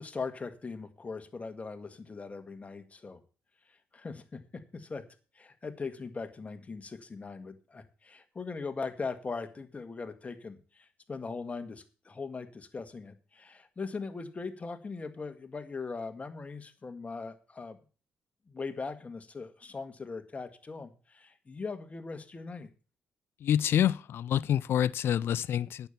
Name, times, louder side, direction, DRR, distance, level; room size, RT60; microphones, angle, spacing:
voice 1, 0.0-3.2 3.7-5.0 5.4-17.8 18.5-22.7, left 4 dB, 35° left, 1.7 m, -40 dB
voice 2, 23.4-25.9, left 10 dB, 70° left, 0.4 m, -27 dB
9.1 x 7.3 x 6.8 m
supercardioid pair, 55°, 4 cm